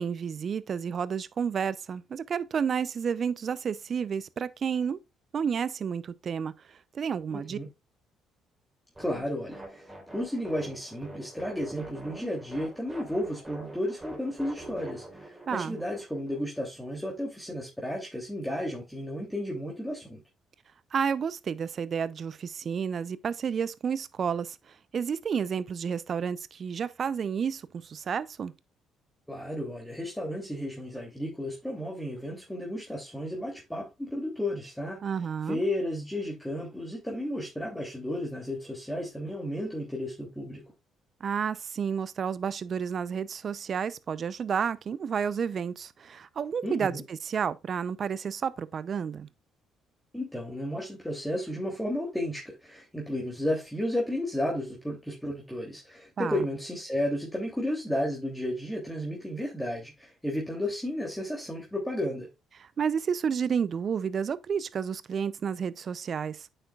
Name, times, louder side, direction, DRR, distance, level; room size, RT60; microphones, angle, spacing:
voice 1, 0.0-5.0 5.3-6.5 6.9-7.6 15.5-15.8 20.9-24.6 24.9-28.5 35.0-35.6 41.2-49.3 56.2-56.4 62.8-66.5, right 7 dB, 50° right, 0.6 m, -31 dB
voice 2, 7.3-7.7 9.0-9.8 10.1-20.2 29.3-35.0 35.5-40.6 46.6-47.0 50.1-62.3, left 1 dB, 5° left, 3.0 m, -33 dB
sound 1, 8.9-16.4, right 2 dB, 15° right, 4.1 m, -45 dB
8.9 x 6.6 x 2.4 m
hypercardioid pair, 50°, 0 cm